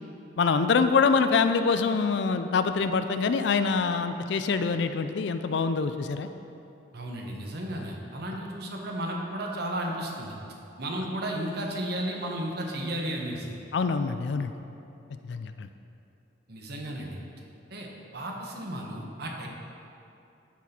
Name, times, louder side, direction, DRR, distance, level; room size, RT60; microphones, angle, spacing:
voice 1, 0.4-6.3 13.7-14.5 15.2-15.7, left 5 dB, 60° left, 9 dB, 0.3 m, -25 dB
voice 2, 6.9-10.4 10.8-13.5 16.5-17.2 17.7-17.9 18.1-19.5, right 1 dB, 55° right, 0 dB, 1.1 m, -33 dB
12.0 x 4.1 x 4.3 m, 2.8 s
head